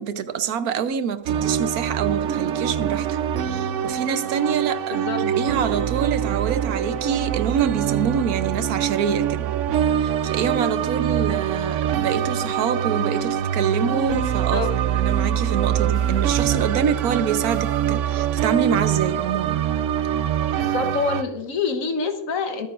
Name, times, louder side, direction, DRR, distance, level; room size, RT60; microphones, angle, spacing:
voice 1, 0.0-9.5 10.0-19.6, right 7 dB, 80° right, 11 dB, 1.3 m, -26 dB
sound 1, 1.3-21.2, right 9 dB, 65° right, 0.8 m, -24 dB
voice 2, 4.9-5.2 14.5-14.7 20.6-22.7, left 5 dB, 65° left, 7 dB, 1.4 m, -26 dB
sound 2, 13.9-15.1 15.9-16.7 17.5-18.3, right 1 dB, 40° right, 4.1 m, -51 dB
22.5 x 9.3 x 2.5 m, 0.91 s
omnidirectional pair, 1.5 m